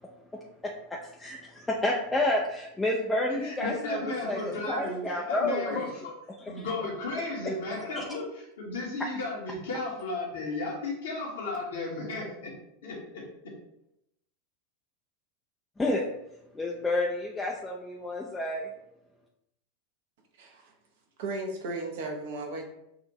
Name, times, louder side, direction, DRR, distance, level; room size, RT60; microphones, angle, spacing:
voice 1, 0.3-5.9 6.4-6.7 7.4-7.6 8.0-8.1 15.8-16.1 16.5-18.7, left 1 dB, 10° left, -2 dB, 0.5 m, -30 dB
voice 2, 3.4-6.1 6.5-12.5 12.8-13.5, left 2 dB, 65° left, -2 dB, 1.4 m, -34 dB
voice 3, 20.4-20.7 21.2-22.7, right 2 dB, 55° right, 3 dB, 0.8 m, -35 dB
6.3 x 2.6 x 3.0 m, 0.81 s
figure-of-eight pair, 85°, 0 cm